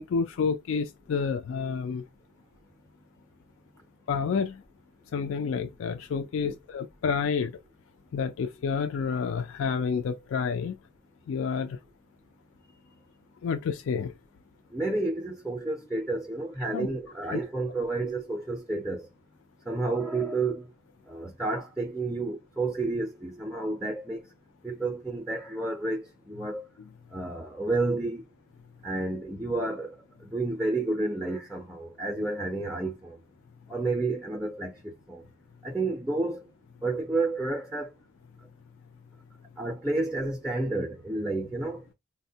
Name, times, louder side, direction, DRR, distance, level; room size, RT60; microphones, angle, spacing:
voice 1, 0.0-2.0 4.1-4.6 5.1-7.5 8.1-10.7 11.3-11.8 13.4-14.1 16.7-16.9 17.3-17.4, left 5 dB, 70° left, 0.3 m, -29 dB
voice 2, 14.7-19.1 19.7-20.7 21.1-24.2 24.6-26.6 27.1-28.2 28.8-29.9 30.2-33.2 33.7-35.2 35.6-36.4 36.8-37.9 39.6-41.8, right 2 dB, 5° right, 0.4 m, -30 dB
4.1 x 2.1 x 2.7 m
head